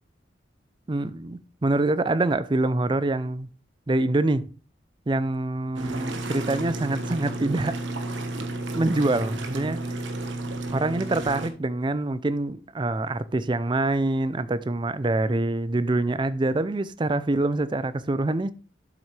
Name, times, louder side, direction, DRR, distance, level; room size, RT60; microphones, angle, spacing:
voice 1, 0.9-3.5 3.9-4.4 5.1-7.8 8.4-8.5 8.7-9.8 10.7-18.5, right 2 dB, 25° right, 0.4 m, -25 dB
sound 1, 5.7-11.5, right 2 dB, 90° right, 1.3 m, -32 dB
7.8 x 7.2 x 3.2 m
head